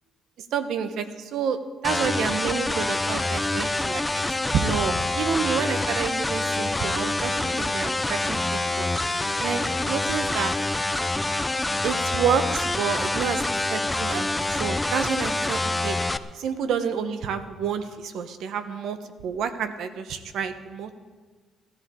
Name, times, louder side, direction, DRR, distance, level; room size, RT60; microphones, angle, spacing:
voice 1, 0.4-10.5 11.8-16.0 16.3-20.9, right 7 dB, 75° right, 9 dB, 1.1 m, -29 dB
sound 1, 1.8-16.2, left 2 dB, 15° left, 0.6 m, -26 dB
18.0 x 14.0 x 3.8 m, 1.4 s
cardioid pair, 90°, 0 cm